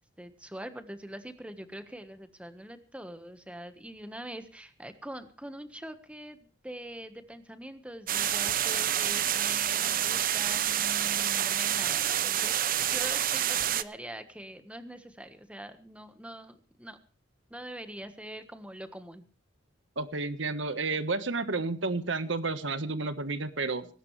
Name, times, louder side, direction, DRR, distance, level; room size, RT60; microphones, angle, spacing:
voice 1, 0.2-17.0 17.5-19.2, right 1 dB, 5° right, 9 dB, 1.4 m, -43 dB
sound 1, 8.1-13.8, right 10 dB, 45° right, 0.8 m, -28 dB
voice 2, 20.0-23.9, right 3 dB, 75° right, 12 dB, 1.4 m, -31 dB
19.5 x 17.5 x 3.3 m, 0.41 s
head